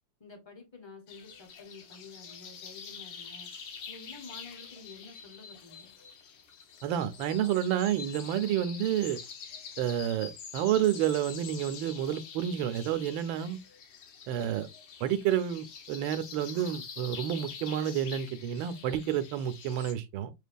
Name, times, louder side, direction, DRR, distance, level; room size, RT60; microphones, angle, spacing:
voice 1, 0.2-3.5 3.9-5.9, left 4 dB, 35° left, 0.4 m, -50 dB
sound 1, 1.1-19.9, left 6 dB, 75° left, 1.6 m, -46 dB
voice 2, 6.8-9.2 9.8-13.6 14.3-14.7 15.0-20.3, right 10 dB, 85° right, 1.3 m, -30 dB
6.7 x 2.3 x 2.5 m
omnidirectional pair, 2.1 m